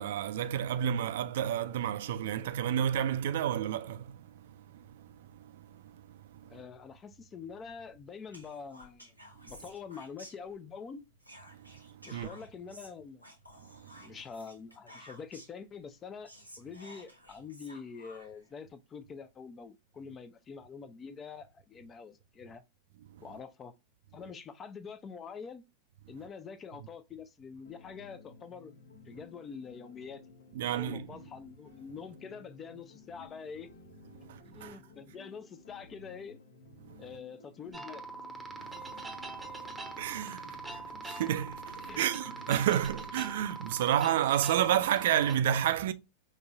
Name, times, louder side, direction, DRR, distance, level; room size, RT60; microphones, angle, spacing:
voice 1, 0.0-6.6 9.4-9.5 11.5-12.3 13.7-14.1 23.1-23.2 30.5-31.2 34.2-34.8 36.8-37.0 38.5-45.9, right 10 dB, 55° right, 0.4 m, -32 dB
voice 2, 6.5-9.1 9.4-11.0 12.0-13.2 14.0-16.3 16.6-22.6 23.2-23.7 24.1-25.6 26.1-28.7 29.1-30.2 30.7-33.7 34.4-36.4 37.0-38.0 41.8-42.1 43.2-43.3, left 6 dB, 25° left, 0.5 m, -45 dB
Whispering, 8.3-10.8 11.2-15.6 16.0-16.1 16.3-18.5, equal, 90° left, 1.0 m, -53 dB
sound 1, 27.6-43.6, left 4 dB, 60° left, 1.0 m, -56 dB
sound 2, 37.7-45.4, right 3 dB, 10° right, 0.9 m, -43 dB
5.3 x 2.9 x 2.4 m
figure-of-eight pair, 90°, 0 cm